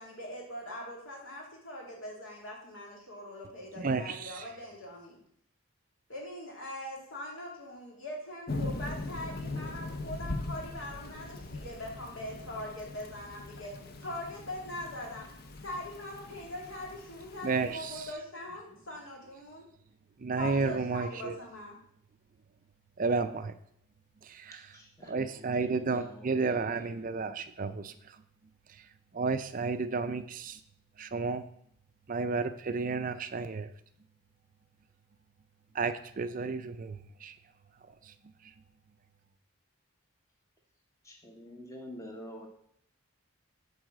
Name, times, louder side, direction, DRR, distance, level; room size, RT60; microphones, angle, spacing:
voice 1, 0.0-5.2 6.1-15.3 15.6-19.6 20.3-21.7, left 1 dB, 65° left, -1 dB, 2.8 m, -42 dB
voice 2, 3.8-4.5 17.4-18.1 20.2-21.4 23.0-23.5 24.2-24.6 25.0-28.2 28.7-28.8 29.1-30.6 31.0-31.5 32.1-33.7 35.7-37.3 37.9-38.1 38.4-38.5, right 4 dB, 40° right, 11 dB, 0.4 m, -32 dB
Thunder / Rain, 8.5-18.1, left 2 dB, 45° left, 0.8 m, -41 dB
voice 3, 24.7-26.9 41.1-42.5, left 1 dB, 15° left, 1 dB, 1.0 m, -48 dB
7.9 x 4.8 x 7.4 m, 0.66 s
head